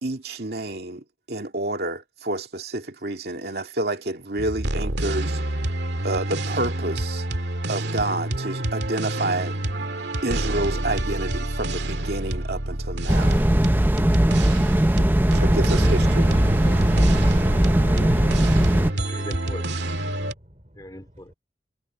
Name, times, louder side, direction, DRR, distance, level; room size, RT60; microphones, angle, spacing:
voice 1, 0.0-5.4 6.0-7.3 7.7-9.9 10.2-13.4 15.3-16.3, right 2 dB, 65° right, 2.3 m, -29 dB
sound 1, 4.4-20.3, right 1 dB, 80° right, 2.0 m, -28 dB
sound 2, 13.1-18.9, right 1 dB, 10° right, 0.6 m, -19 dB
voice 2, 15.5-16.0 17.5-18.5 18.9-19.8 20.8-21.3, left 1 dB, 20° left, 3.6 m, -39 dB
voice 3, 20.1-21.3, equal, 40° right, 3.9 m, -52 dB
head